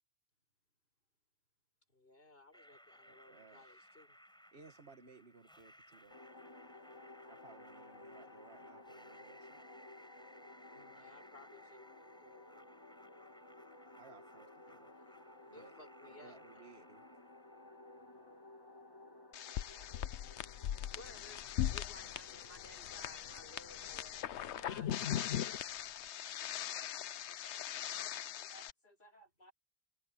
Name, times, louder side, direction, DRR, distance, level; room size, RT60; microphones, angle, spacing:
voice 1, 1.9-4.2 10.7-12.7 15.5-16.7 18.0-18.5 21.0-25.6 25.9-26.0, left 1 dB, 60° left, 6.9 m, -59 dB
sound 1, 2.5-18.5, equal, 5° left, 7.8 m, -62 dB
voice 2, 3.1-3.6 4.5-6.2 7.3-9.6 14.0-15.0 15.5-15.7 16.1-17.1, right 4 dB, 70° right, 1.8 m, -60 dB
sound 2, 6.1-24.7, left 2 dB, 20° left, 1.9 m, -57 dB
sound 3, 19.3-28.7, left 11 dB, 85° left, 1.0 m, -40 dB
voice 3, 27.4-29.5, right 1 dB, 45° left, 4.9 m, -63 dB
omnidirectional pair, 1.1 m